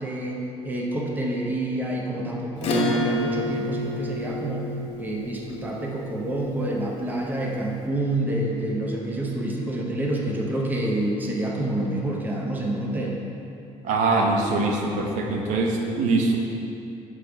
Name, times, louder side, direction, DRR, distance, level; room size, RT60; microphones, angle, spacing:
voice 1, 0.0-4.7 5.0-13.2, right 1 dB, 15° right, -1 dB, 0.6 m, -28 dB
Acoustic guitar / Strum, 2.6-7.5, left 1 dB, 55° left, 0.8 m, -29 dB
voice 2, 13.8-16.4, right 3 dB, 85° right, 1 dB, 0.7 m, -23 dB
6.3 x 4.7 x 3.4 m, 2.8 s
cardioid pair, 155°, 12 cm